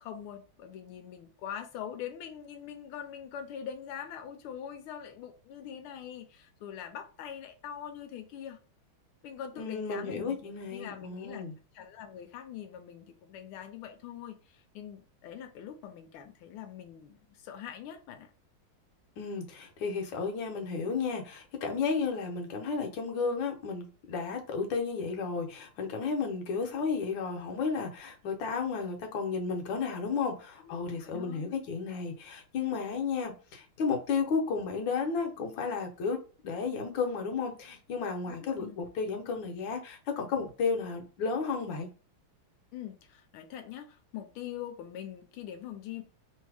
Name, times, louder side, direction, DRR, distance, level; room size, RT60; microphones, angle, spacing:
voice 1, 0.0-8.6 9.2-11.5 11.7-18.3 30.6-31.6 38.3-38.8 42.7-46.0, left 9 dB, 85° left, 1.5 m, -43 dB
voice 2, 9.6-11.5 19.2-36.2 36.4-41.9, left 5 dB, 70° left, 1.5 m, -33 dB
3.5 x 2.7 x 4.7 m
omnidirectional pair, 2.3 m